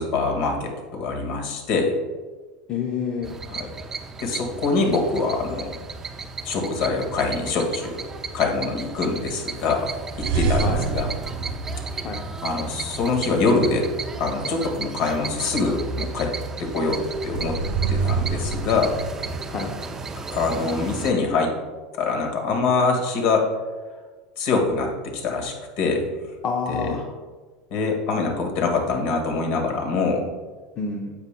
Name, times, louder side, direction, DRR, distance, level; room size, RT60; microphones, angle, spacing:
voice 1, 0.0-1.9 3.6-3.7 4.2-5.7 6.4-8.0 8.3-9.9 10.2-11.1 12.4-13.9 14.2-16.3 16.6-17.6 17.9-18.9 20.3-21.6 22.0-23.5 24.4-26.1 26.7-27.0 27.7-30.3, left 4 dB, 55° left, 2 dB, 1.8 m, -24 dB
voice 2, 2.7-3.4 10.6-10.9 12.0-12.3 19.5-19.7 26.4-27.1 30.8-31.1, left 5 dB, 35° left, 1 dB, 0.7 m, -28 dB
sound 1, 3.2-21.1, right 3 dB, 15° right, 0.5 m, -34 dB
sound 2, 10.2-12.6 17.1-19.4, right 4 dB, 65° right, 0.9 m, -26 dB
9.5 x 8.2 x 2.2 m, 1.3 s
supercardioid pair, 150°, 3 cm